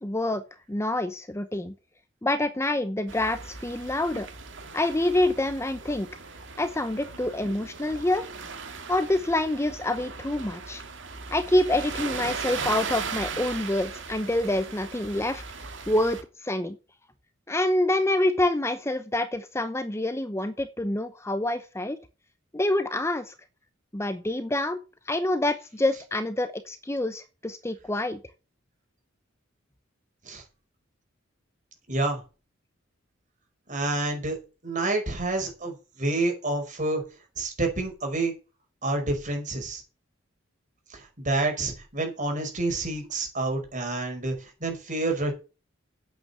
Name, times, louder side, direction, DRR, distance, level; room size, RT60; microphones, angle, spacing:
voice 1, 0.0-0.4 0.7-1.7 2.2-4.3 4.7-6.1 6.6-8.3 8.9-10.8 11.3-15.4 15.9-16.8 17.5-22.0 22.5-23.3 23.9-24.8 25.1-28.2, left 1 dB, 15° left, 11 dB, 0.7 m, -26 dB
sound 1, 3.1-16.2, right 5 dB, 65° right, 2.2 m, -38 dB
voice 2, 31.9-32.2 33.7-34.4 34.6-37.0 37.4-38.3 38.8-39.8 40.9-45.3, right 2 dB, 40° right, 3 dB, 5.3 m, -28 dB
9.6 x 8.2 x 6.9 m, 0.31 s
head